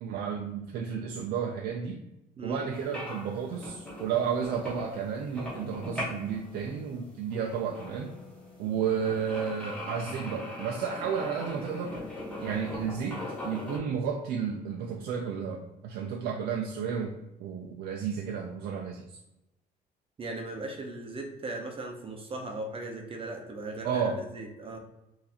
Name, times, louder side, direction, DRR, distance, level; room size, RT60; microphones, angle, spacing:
voice 1, 0.0-2.0 2.4-8.2 8.6-12.0 12.4-19.0 23.8-24.2, right 7 dB, 75° right, 2 dB, 0.4 m, -32 dB
sound 1, 2.7-13.8, left 1 dB, 5° left, 1.0 m, -40 dB
voice 2, 20.2-24.8, right 2 dB, 35° right, 2 dB, 0.6 m, -38 dB
4.0 x 2.6 x 2.8 m, 0.91 s
cardioid pair, 110°, 17 cm